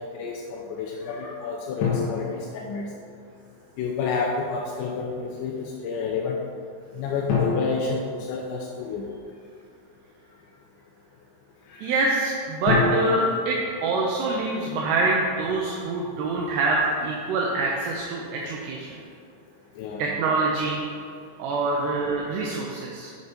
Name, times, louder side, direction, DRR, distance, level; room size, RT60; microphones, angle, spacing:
voice 1, 0.1-2.9 3.8-6.4 6.9-9.0 11.7-11.9 19.8-20.1, left 5 dB, 85° left, -1 dB, 2.8 m, -30 dB
sound 1, 1.8-3.4 7.3-9.2 12.7-14.9, left 4 dB, 65° left, 3.4 m, -29 dB
voice 2, 11.8-18.9 20.0-20.9 21.4-23.1, right 2 dB, 75° right, -2 dB, 2.6 m, -25 dB
8.0 x 7.1 x 5.2 m, 2.4 s
omnidirectional pair, 5.6 m